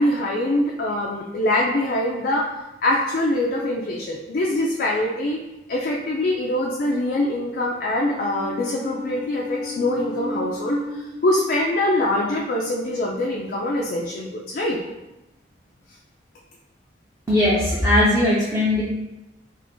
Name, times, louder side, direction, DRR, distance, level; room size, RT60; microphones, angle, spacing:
voice 1, 0.0-2.5 2.8-5.4 5.7-14.8, left 1 dB, 50° left, -2 dB, 0.3 m, -23 dB
sound 1, 8.0-14.4, left 1 dB, 65° right, 0.5 m, -36 dB
voice 2, 17.3-18.8, left 1 dB, 15° right, -8 dB, 0.5 m, -19 dB
2.5 x 2.4 x 3.6 m, 0.98 s
head